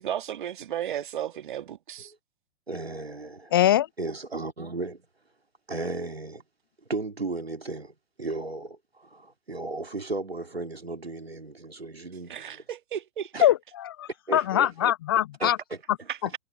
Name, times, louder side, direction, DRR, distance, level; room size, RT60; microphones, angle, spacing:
voice 1, 0.0-2.1 12.3-13.3 16.1-16.2, right 10 dB, 55° right, 1.7 m, -34 dB
voice 2, 2.7-3.5 4.0-5.1 5.7-6.4 6.9-12.6 13.3-13.4 14.3-14.9 15.4-15.8, right 2 dB, 85° right, 2.7 m, -35 dB
voice 3, 3.5-3.9 13.4-15.6, left 12 dB, 25° left, 0.4 m, -23 dB
figure-of-eight pair, 115°, 30 cm